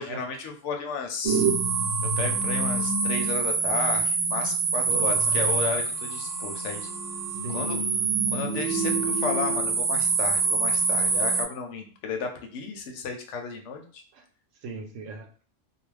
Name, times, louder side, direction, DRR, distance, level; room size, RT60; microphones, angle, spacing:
voice 1, 0.0-1.5 2.2-6.9 7.5-7.8 8.3-14.0, left 5 dB, 70° left, 4 dB, 0.9 m, -33 dB
sound 1, 1.2-11.4, right 4 dB, 65° right, 0.8 m, -25 dB
voice 2, 4.9-5.3 7.4-7.6 14.1-14.2 14.6-15.4, right 3 dB, 90° right, 4 dB, 1.0 m, -38 dB
2.4 x 2.1 x 3.2 m, 0.42 s
omnidirectional pair, 1.3 m